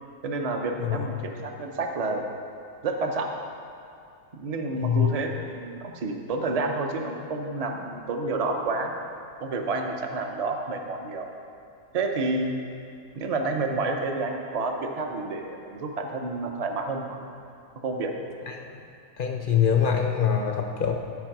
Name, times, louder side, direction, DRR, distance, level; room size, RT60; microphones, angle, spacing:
voice 1, 0.2-2.2 2.8-3.3 4.3-9.0 9.4-11.3 11.9-12.6 13.1-17.2 17.8-18.1, right 3 dB, 40° right, 3 dB, 0.6 m, -29 dB
voice 2, 4.8-5.1 18.6-18.7 19.2-21.0, left 8 dB, 60° left, 3 dB, 0.5 m, -24 dB
11.5 x 4.7 x 6.0 m, 2.4 s
omnidirectional pair, 1.6 m